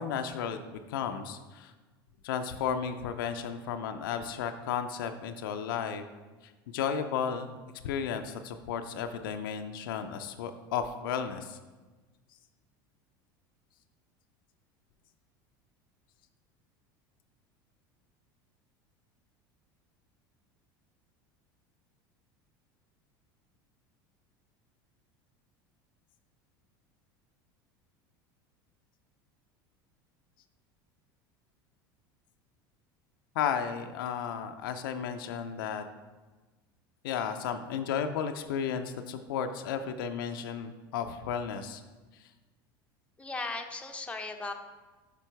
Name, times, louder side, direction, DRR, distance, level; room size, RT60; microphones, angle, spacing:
voice 1, 0.0-1.7 2.2-6.1 6.7-7.6 7.8-11.6 33.3-35.8 37.0-41.8, left 7 dB, 80° left, 7 dB, 0.5 m, -33 dB
voice 2, 43.2-44.5, left 3 dB, 10° left, 3 dB, 0.8 m, -37 dB
6.8 x 5.3 x 4.6 m, 1.3 s
hypercardioid pair, 90°, 11 cm